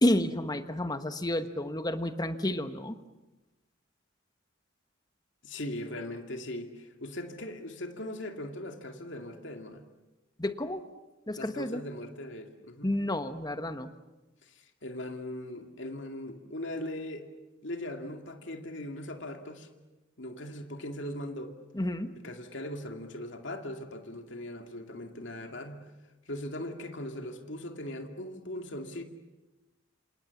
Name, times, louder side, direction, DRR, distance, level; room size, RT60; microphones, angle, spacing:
voice 1, 0.0-3.0 10.4-10.9 11.3-11.8 12.8-13.9 21.7-22.1, left 1 dB, 20° left, 9 dB, 1.3 m, -30 dB
voice 2, 5.4-9.8 11.4-12.9 14.4-17.2 17.6-19.7 20.2-21.6 22.2-25.8 26.3-29.0, left 1 dB, 65° left, 4 dB, 2.5 m, -39 dB
27.5 x 27.5 x 7.2 m, 1.1 s
head